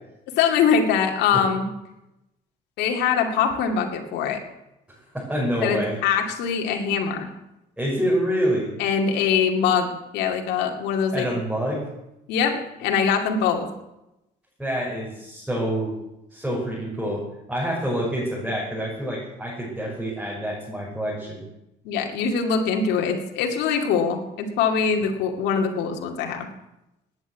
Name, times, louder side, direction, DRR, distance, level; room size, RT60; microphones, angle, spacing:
voice 1, 0.4-1.6 2.8-4.4 5.6-7.3 8.8-9.9 10.1-11.3 12.3-13.7 21.8-26.5, left 6 dB, 85° left, 2 dB, 2.4 m, -23 dB
voice 2, 5.1-6.0 7.8-8.7 11.1-11.9 14.6-16.0 16.3-21.4, equal, 5° right, -5 dB, 5.9 m, -27 dB
19.0 x 9.3 x 8.2 m, 0.93 s
cardioid pair, 110°, 17 cm